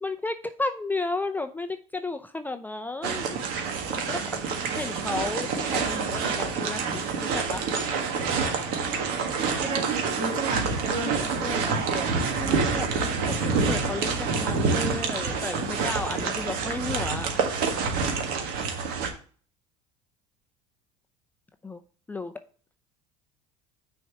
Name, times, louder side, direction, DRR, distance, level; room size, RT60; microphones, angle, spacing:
voice 1, 0.0-3.4 4.1-4.2 4.5-7.6 11.0-11.6 12.4-17.4 21.6-21.8 22.1-22.3, left 2 dB, 10° left, 8 dB, 0.5 m, -33 dB
sound 1, 3.0-19.1, right 5 dB, 65° right, 1.6 m, -27 dB
voice 2, 9.6-12.1, right 4 dB, 45° right, 4 dB, 2.1 m, -32 dB
6.1 x 4.4 x 5.8 m, 0.42 s
supercardioid pair, 105°, 16 cm